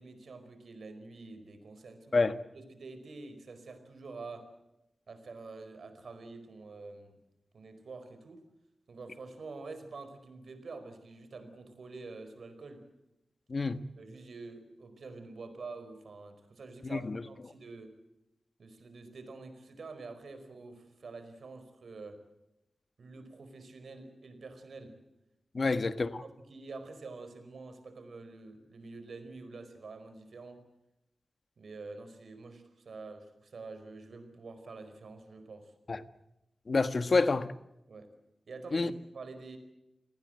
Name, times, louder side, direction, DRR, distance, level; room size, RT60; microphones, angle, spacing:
voice 1, 0.0-4.5 5.1-7.2 7.5-8.4 8.9-12.9 14.0-17.9 18.6-22.2 23.0-25.0 25.6-25.7 26.2-30.6 31.6-35.7 37.9-38.1 38.5-39.6, right 3 dB, 80° right, 4.7 m, -47 dB
voice 2, 13.5-13.8 16.8-17.2 25.5-26.2 35.9-36.0 36.7-37.5 38.7-38.9, left 3 dB, 50° left, 1.5 m, -28 dB
30.0 x 19.0 x 7.8 m
wide cardioid pair, 100°, 0 cm